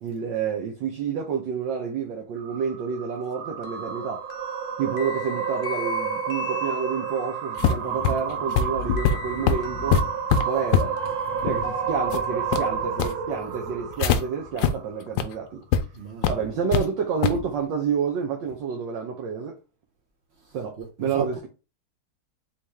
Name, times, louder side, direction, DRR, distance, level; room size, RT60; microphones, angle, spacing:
voice 1, 0.0-4.3 4.8-10.1 10.4-11.0 11.4-15.6 16.3-19.6 20.5-21.5, right 6 dB, 70° right, 1.4 m, -29 dB
sound 1, 2.4-14.9, right 7 dB, 90° right, 1.5 m, -30 dB
sound 2, 3.6-7.4 9.0-12.7, left 5 dB, 40° left, 0.7 m, -41 dB
sound 3, 7.6-14.2 14.6-14.7 15.1-15.2 15.7-15.8 16.2-16.8 17.2-17.4, left 7 dB, 75° left, 1.2 m, -24 dB
voice 2, 15.9-16.6 20.4-21.5, right 6 dB, 45° right, 0.8 m, -36 dB
4.3 x 3.2 x 3.5 m
omnidirectional pair, 2.2 m